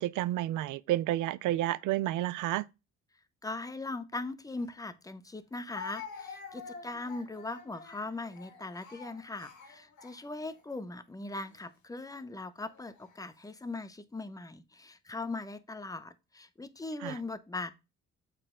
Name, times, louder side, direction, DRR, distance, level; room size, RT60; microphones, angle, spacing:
voice 1, 0.0-2.7 17.0-17.1, right 14 dB, 85° right, 0.5 m, -30 dB
voice 2, 3.4-17.7, left 2 dB, 10° left, 0.7 m, -40 dB
Speech, 4.6-4.7 5.7-10.6 11.4-11.6 12.6-13.2, left 5 dB, 80° left, 2.1 m, -47 dB
7.8 x 4.1 x 3.7 m
cardioid pair, 90°, 30 cm